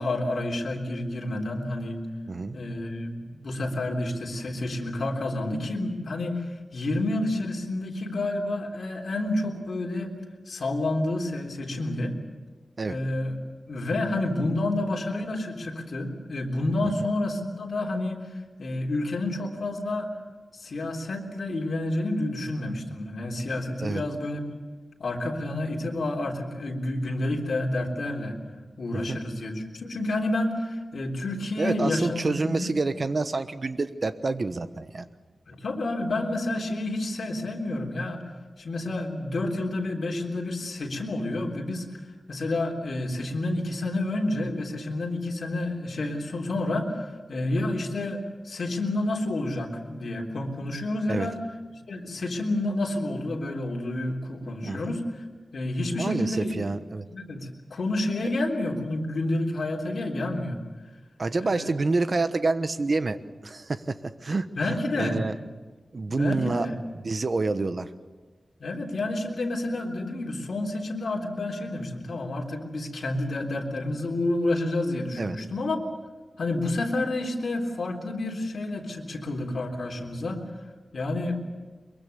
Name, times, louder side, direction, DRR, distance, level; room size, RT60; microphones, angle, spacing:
voice 1, 0.0-2.0 2.5-10.1 10.5-12.1 12.9-13.4 13.7-18.3 18.6-20.1 20.6-24.6 25.0-28.4 28.8-32.7 35.5-38.2 38.6-42.0 42.3-51.4 51.9-55.2 55.5-56.7 57.1-60.6 61.4-61.7 64.6-65.2 66.1-66.8 68.6-75.9 76.4-80.4 80.9-81.4, left 2 dB, 70° left, 0 dB, 3.6 m, -29 dB
voice 2, 31.6-35.1 51.1-51.3 54.6-55.0 56.0-57.1 61.2-65.4 65.9-66.7 67.0-67.9 75.2-75.4, right 3 dB, 45° right, 11 dB, 1.1 m, -28 dB
23.5 x 23.0 x 7.0 m, 1.3 s
wide cardioid pair, 125°, 0 cm